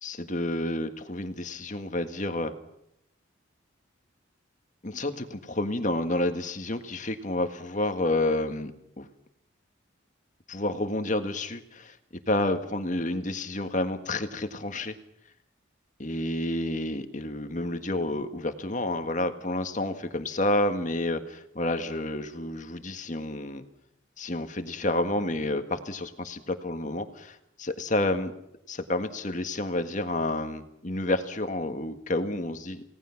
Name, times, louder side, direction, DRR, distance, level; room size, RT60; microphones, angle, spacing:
voice 1, 0.0-2.5 4.8-8.7 9.0-9.1 10.5-12.0 12.3-14.9 16.0-23.6 24.2-28.3 28.7-32.8, left 1 dB, 40° left, 7 dB, 1.7 m, -29 dB
29.5 x 18.0 x 5.9 m, 0.79 s
head